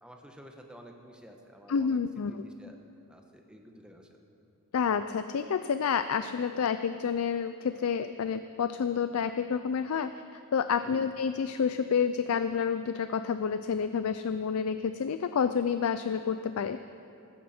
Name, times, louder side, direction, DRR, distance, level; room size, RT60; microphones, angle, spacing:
voice 1, 0.0-2.0 2.3-2.8 3.1-4.1 10.8-11.1, equal, 5° right, 2 dB, 1.1 m, -51 dB
voice 2, 1.7-2.4 4.7-10.1 10.5-16.8, left 6 dB, 70° left, 11 dB, 0.4 m, -29 dB
15.0 x 13.5 x 4.3 m, 2.7 s
head